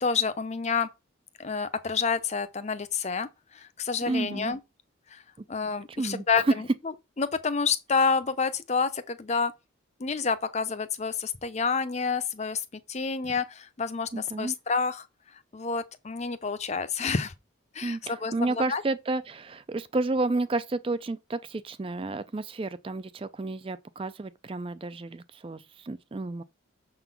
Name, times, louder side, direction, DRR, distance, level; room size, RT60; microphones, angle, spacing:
voice 1, 0.0-0.9 1.4-4.6 5.1-5.2 5.5-6.7 7.2-9.5 10.0-12.6 12.9-15.1 15.5-17.3 17.7-18.8, left 5 dB, 35° left, 0.6 m, -28 dB
voice 2, 4.1-4.5 5.9-6.2 14.1-14.5 17.8-26.4, right 2 dB, 25° right, 0.3 m, -31 dB
6.8 x 3.8 x 5.8 m
head